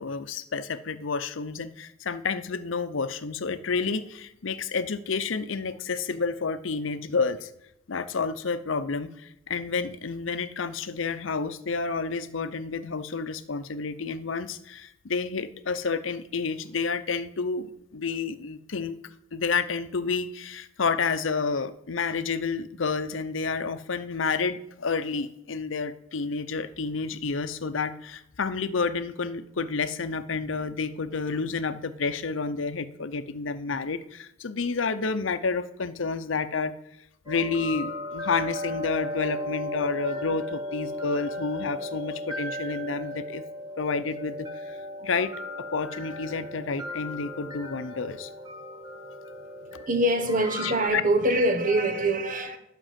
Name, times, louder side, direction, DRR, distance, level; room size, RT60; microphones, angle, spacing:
voice 1, 0.0-7.5 7.9-19.0 19.3-36.7 37.3-43.4 43.8-45.3 45.7-48.3 49.7-49.9 50.6-51.0, left 4 dB, 80° left, 0.7 m, -30 dB
sound 1, 37.3-50.9, left 1 dB, 20° right, 1.9 m, -36 dB
voice 2, 49.9-52.6, right 1 dB, 45° right, 1.3 m, -24 dB
11.5 x 5.3 x 7.4 m
head